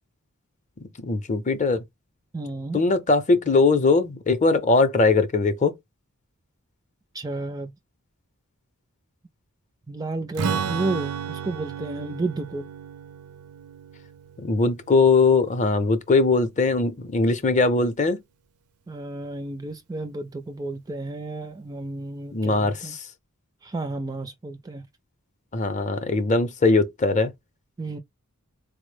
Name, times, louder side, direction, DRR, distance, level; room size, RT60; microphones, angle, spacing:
voice 1, 1.0-1.8 2.7-5.7 14.4-18.2 22.3-23.1 25.5-27.3, left 3 dB, 35° left, 0.6 m, -21 dB
voice 2, 2.3-2.8 7.1-7.7 9.9-12.6 18.9-22.9 23.6-24.9 27.8-28.0, right 2 dB, 15° right, 0.3 m, -32 dB
Strum, 10.4-16.0, right 7 dB, 75° right, 0.5 m, -33 dB
4.0 x 2.0 x 3.1 m
head